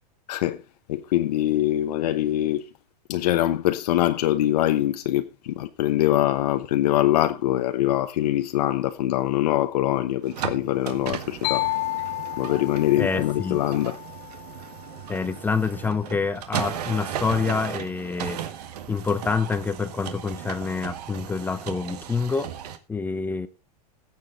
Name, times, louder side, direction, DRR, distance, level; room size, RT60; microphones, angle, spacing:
voice 1, 0.3-0.6 0.9-2.6 3.1-11.7 12.4-14.0, left 13 dB, 75° left, 1.0 m, -23 dB
sound 1, 10.2-22.8, right 9 dB, 80° right, 1.8 m, -36 dB
sound 2, 11.4-15.1, left 18 dB, 50° left, 1.4 m, -32 dB
voice 2, 13.0-13.6 15.1-18.4 18.9-22.5 22.9-23.5, left 5 dB, 10° left, 0.6 m, -27 dB
16.0 x 7.5 x 4.0 m
supercardioid pair, 150°, 20 cm